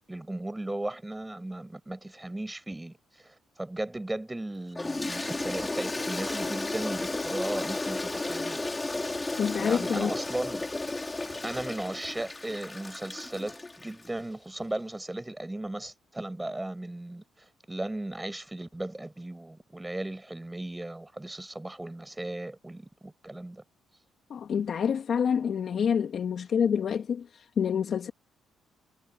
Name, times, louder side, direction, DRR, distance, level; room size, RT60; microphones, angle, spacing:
voice 1, 0.0-8.6 9.6-10.8 11.4-23.6, right 1 dB, 10° right, 6.9 m, -36 dB
Toilet flush, 4.8-14.1, left 2 dB, 20° left, 3.3 m, -33 dB
voice 2, 9.4-10.1 24.3-28.1, left 7 dB, 55° left, 2.6 m, -27 dB
cardioid pair, 90°, 0 cm